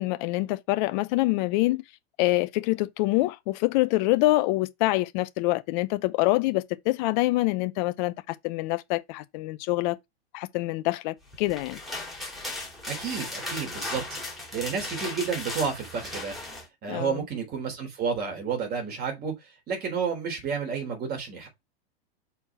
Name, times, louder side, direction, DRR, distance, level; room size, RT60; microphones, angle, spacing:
voice 1, 0.0-1.8 2.2-10.0 10.3-11.8 16.9-17.2, left 19 dB, 45° left, 0.7 m, -25 dB
sound 1, 11.3-16.7, left 2 dB, ahead, 2.4 m, -36 dB
voice 2, 12.9-14.2 14.5-16.4 16.8-21.5, right 6 dB, 30° right, 3.5 m, -31 dB
5.8 x 4.3 x 4.6 m
hypercardioid pair, 130°, 32 cm